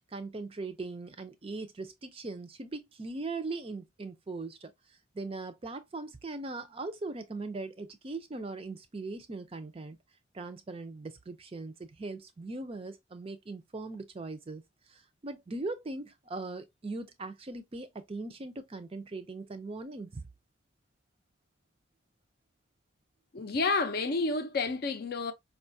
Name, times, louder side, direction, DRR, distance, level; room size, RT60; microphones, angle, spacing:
voice 1, 0.0-4.7 5.1-10.0 10.3-14.6 14.9-20.2, right 3 dB, 25° right, 0.4 m, -40 dB
voice 2, 23.3-25.3, left 3 dB, 45° left, 0.5 m, -30 dB
4.8 x 2.3 x 2.5 m
head